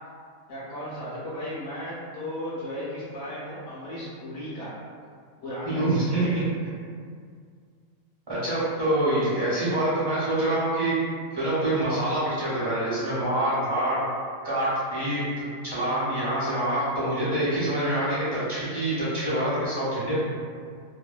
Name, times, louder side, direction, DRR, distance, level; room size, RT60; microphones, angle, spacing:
voice 1, 0.5-4.7 5.4-5.8 6.1-6.4, equal, 70° left, -9 dB, 0.9 m, -35 dB
voice 2, 5.6-6.2 8.3-11.0 11.3-14.0 14.4-15.2 15.6-20.1, right 1 dB, 25° right, -12 dB, 0.5 m, -26 dB
2.7 x 2.1 x 2.3 m, 2.1 s
omnidirectional pair, 1.4 m